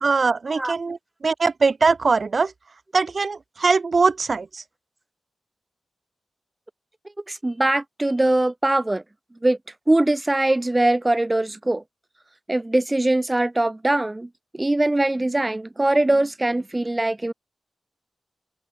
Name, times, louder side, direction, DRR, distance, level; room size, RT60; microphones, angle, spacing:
voice 1, 0.0-1.0 1.2-2.5 2.9-4.6, right 4 dB, 35° right, 0.4 m, -21 dB
voice 2, 7.3-9.0 9.4-9.6 9.9-11.8 12.5-17.3, right 2 dB, 15° right, 1.0 m, -22 dB
open air
wide cardioid pair, 170°, 0 cm